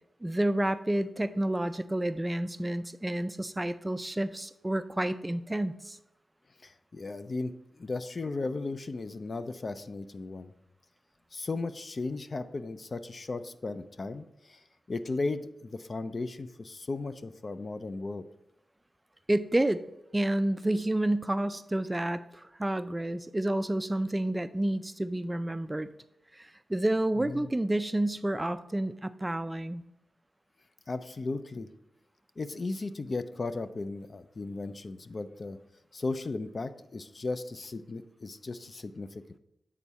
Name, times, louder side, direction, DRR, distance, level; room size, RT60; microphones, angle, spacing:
voice 1, 0.2-6.0 19.3-19.8 20.1-25.9 26.3-29.8, right 1 dB, 20° right, 12 dB, 0.3 m, -29 dB
voice 2, 6.6-10.5 11.3-18.3 27.2-27.5 30.9-31.7 32.4-35.6 35.9-39.2, left 3 dB, 50° left, 11 dB, 0.4 m, -36 dB
8.5 x 3.6 x 4.1 m, 0.88 s
cardioid pair, 65°, 0 cm